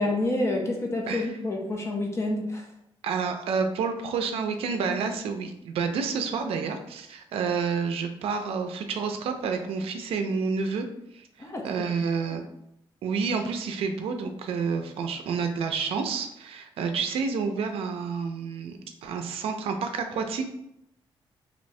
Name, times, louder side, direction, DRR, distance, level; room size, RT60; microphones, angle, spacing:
voice 1, 0.0-2.7 11.4-11.7 12.3-12.4, left 2 dB, 30° left, 0 dB, 0.5 m, -28 dB
voice 2, 3.0-10.9 11.1-12.4 13.0-20.4, right 5 dB, 85° right, 5 dB, 0.4 m, -29 dB
3.1 x 2.8 x 2.6 m, 0.79 s
wide cardioid pair, 145°, 10 cm